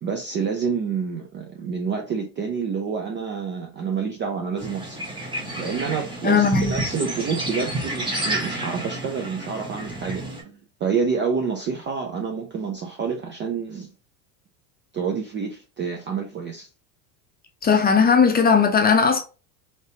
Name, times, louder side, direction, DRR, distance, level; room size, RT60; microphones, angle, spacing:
voice 1, 0.0-5.0 5.6-13.9 14.9-16.7, right 5 dB, 25° right, 0.3 m, -28 dB
sound 1, 4.6-10.4, right 1 dB, 10° right, 0.9 m, -30 dB
voice 2, 6.2-6.8 17.6-19.2, left 5 dB, 20° left, 0.6 m, -17 dB
3.2 x 2.8 x 2.7 m
hypercardioid pair, 95°, 50 cm